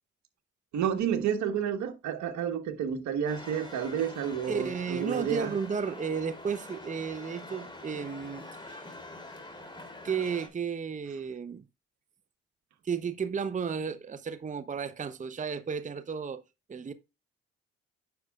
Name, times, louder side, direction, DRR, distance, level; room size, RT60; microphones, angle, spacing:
voice 1, 0.7-5.5, right 8 dB, 70° right, 1.5 m, -30 dB
sound 1, 3.3-10.5, left 2 dB, 15° left, 3.1 m, -45 dB
voice 2, 4.4-9.0 10.0-11.6 12.8-16.4 16.7-16.9, right 6 dB, 25° right, 0.7 m, -33 dB
9.5 x 6.4 x 2.4 m
supercardioid pair, 60°, 29 cm